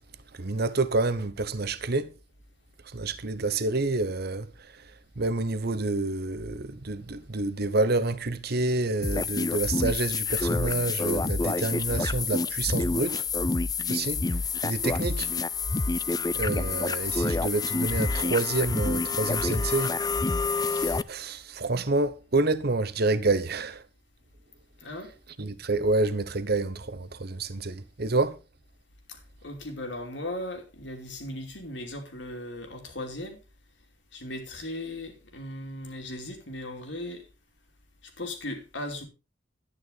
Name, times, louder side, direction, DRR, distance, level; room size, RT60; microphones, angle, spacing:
voice 1, 0.4-2.1 2.9-4.5 5.2-13.3 13.9-14.2 14.6-15.3 16.3-19.9 20.7-23.8 25.4-28.4, right 3 dB, 60° right, 1.0 m, -28 dB
sound 1, 9.0-21.0, left 3 dB, 20° left, 0.5 m, -28 dB
voice 2, 24.8-25.1 29.1-33.4 34.1-37.3 38.2-39.0, left 1 dB, 75° left, 2.9 m, -37 dB
11.0 x 9.7 x 4.0 m
head